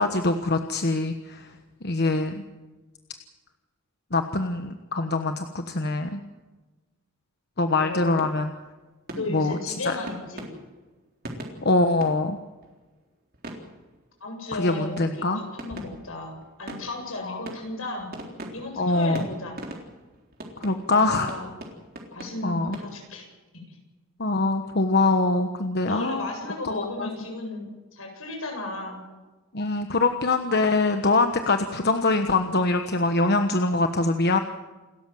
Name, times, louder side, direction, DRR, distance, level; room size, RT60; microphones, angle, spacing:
voice 1, 0.0-1.5 1.8-2.4 4.1-6.2 7.6-8.5 9.3-10.0 11.6-12.4 14.5-15.4 17.2-17.4 18.8-19.3 20.6-21.3 22.4-22.8 24.2-26.3 26.7-27.1 29.5-34.4, left 2 dB, 50° left, 7 dB, 1.2 m, -24 dB
voice 2, 7.8-8.2 9.1-10.5 14.2-18.1 18.5-19.6 20.9-21.5 22.1-23.3 23.7-23.8 25.8-29.0, left 2 dB, 80° left, 2 dB, 8.0 m, -34 dB
sound 1, 7.9-8.8 9.1-12.9 13.3-14.2 14.5-22.9, right 1 dB, 45° right, 3.8 m, -42 dB
28.5 x 13.5 x 7.8 m, 1.2 s
head